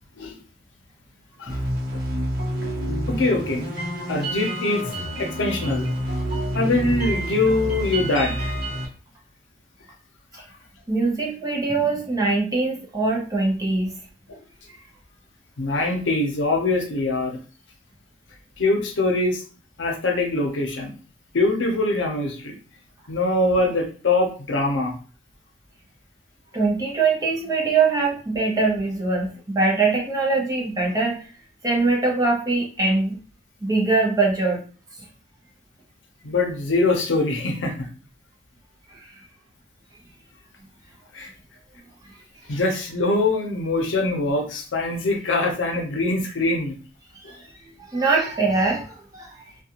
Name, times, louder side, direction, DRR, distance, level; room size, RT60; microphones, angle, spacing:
sound 1, 1.5-8.8, right 1 dB, 50° right, 1.0 m, -28 dB
voice 1, 3.1-3.6 4.1-4.9 5.2-5.9 6.5-8.5 14.3-14.4 15.6-17.4 18.6-19.4 19.8-20.9 21.3-22.6 23.1-25.0 36.2-37.9 41.1-41.3 42.5-46.8, left 2 dB, 80° left, 3 dB, 0.6 m, -23 dB
voice 2, 10.9-13.9 26.5-31.3 31.6-33.2 33.6-34.6 38.9-39.2 47.3-49.3, right 3 dB, 20° right, -3 dB, 0.7 m, -22 dB
2.4 x 2.3 x 2.8 m, 0.37 s
head